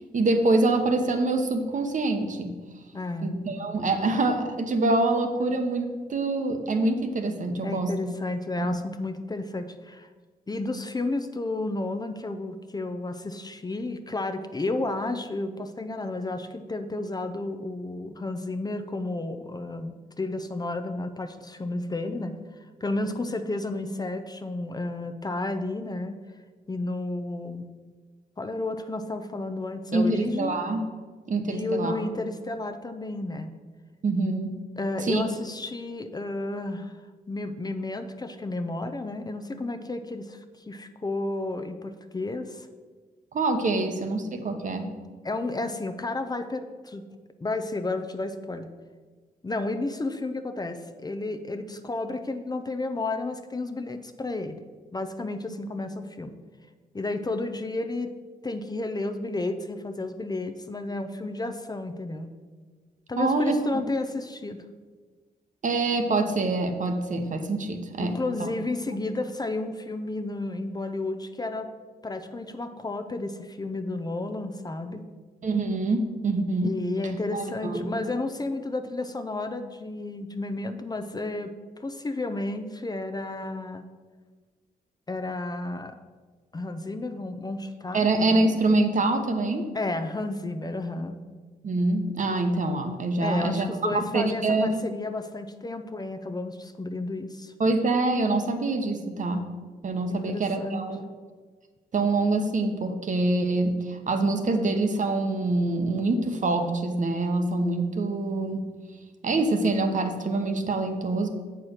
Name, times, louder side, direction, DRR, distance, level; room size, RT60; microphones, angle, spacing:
voice 1, 0.1-2.5 3.2-7.9 8.6-8.8 29.9-30.8 31.3-32.0 34.0-34.5 35.0-35.2 43.3-44.9 63.2-63.5 65.6-68.1 75.4-76.7 77.3-77.9 87.9-89.7 91.6-94.8 97.6-99.4 99.8-101.0 101.9-108.6 109.2-111.3, right 2 dB, 50° right, 6 dB, 1.0 m, -25 dB
voice 2, 2.9-3.4 7.6-10.1 10.5-22.4 22.8-26.2 26.7-27.7 28.4-30.6 31.5-33.5 34.8-37.0 37.3-40.4 40.7-42.7 44.8-45.0 45.2-47.0 47.4-48.7 49.4-54.6 54.9-56.3 56.9-58.1 58.4-62.3 63.1-64.6 68.0-71.7 72.0-75.0 76.6-81.5 81.8-83.8 85.1-86.0 86.5-88.1 89.7-91.2 93.2-97.5 100.1-100.9, left 2 dB, 25° left, 7 dB, 0.6 m, -32 dB
7.3 x 4.5 x 6.4 m, 1.4 s
cardioid pair, 75°, 16 cm